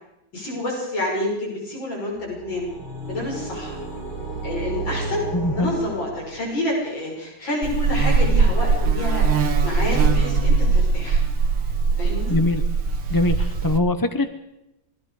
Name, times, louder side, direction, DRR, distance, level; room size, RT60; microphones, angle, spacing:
voice 1, 0.3-2.7 3.1-3.8 4.4-5.2 5.6-11.2 12.0-12.4, left 1 dB, 75° left, -2 dB, 7.0 m, -28 dB
sound 1, 2.2-6.8, right 2 dB, 25° right, 7.6 m, -32 dB
voice 2, 5.3-5.7 12.3-12.6 13.1-14.3, left 2 dB, 20° left, 8 dB, 0.6 m, -22 dB
Buzz, 7.6-13.8, right 4 dB, 80° right, 2.4 m, -20 dB
27.0 x 23.0 x 5.0 m, 0.88 s
omnidirectional pair, 2.1 m